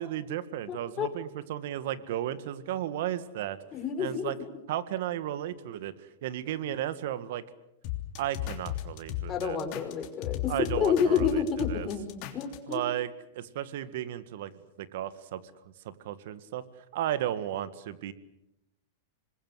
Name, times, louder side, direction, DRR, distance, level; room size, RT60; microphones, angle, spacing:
voice 1, 0.0-3.6 4.0-4.4 4.7-5.9 6.2-7.4 8.2-9.6 10.5-11.4 11.7-11.9 12.7-14.5 14.8-15.4 15.8-16.6 16.9-18.1, right 12 dB, 65° right, 14 dB, 1.8 m, -34 dB
voice 2, 0.7-1.1 3.7-4.5 9.3-12.9, left 7 dB, 30° left, 5 dB, 4.8 m, -29 dB
sound 1, 7.8-12.7, left 14 dB, 50° left, 3.2 m, -35 dB
26.5 x 21.0 x 8.1 m, 0.88 s
hypercardioid pair, 120°, 0 cm